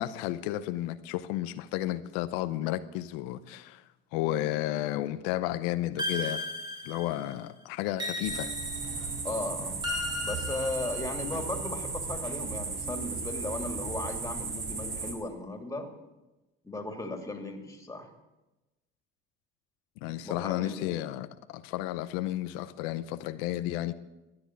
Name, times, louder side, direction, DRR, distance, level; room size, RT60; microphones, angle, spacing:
voice 1, 0.0-3.8 4.1-6.5 6.8-8.5 20.0-23.9, left 14 dB, 90° left, 0.8 m, -32 dB
sound 1, 6.0-7.3 8.0-9.1 9.8-11.4, left 2 dB, 15° right, 2.4 m, -36 dB
emmentaler farm ambience-crickets at dusk, 8.2-15.1, right 4 dB, 40° right, 5.2 m, -35 dB
voice 2, 9.2-9.8 10.2-15.9 16.6-18.1 20.2-21.0, left 2 dB, 10° left, 2.8 m, -36 dB
14.0 x 10.0 x 9.8 m
cardioid pair, 110°, 29 cm